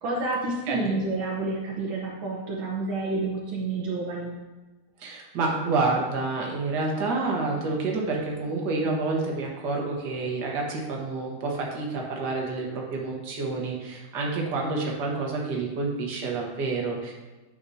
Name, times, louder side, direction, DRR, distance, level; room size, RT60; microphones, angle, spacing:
voice 1, 0.0-4.4, right 2 dB, 70° right, -3 dB, 1.7 m, -29 dB
voice 2, 5.0-17.1, right 3 dB, 55° right, -1 dB, 1.8 m, -28 dB
9.3 x 7.0 x 2.7 m, 1.2 s
omnidirectional pair, 2.3 m